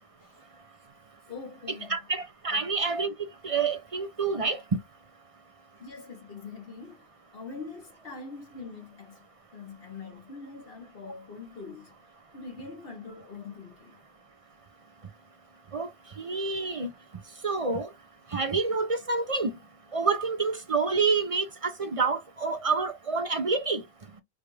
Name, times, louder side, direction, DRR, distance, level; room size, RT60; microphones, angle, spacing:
voice 1, 1.3-2.0 2.5-2.7 5.7-7.1 7.3-9.2 9.5-11.9 12.3-14.0, left 4 dB, 55° left, 1.4 m, -43 dB
voice 2, 1.9-4.6 15.7-15.9 16.2-16.9 17.4-17.9 18.3-19.5 19.9-23.8, right 4 dB, 40° right, 0.6 m, -28 dB
4.9 x 2.4 x 3.2 m
omnidirectional pair, 1.2 m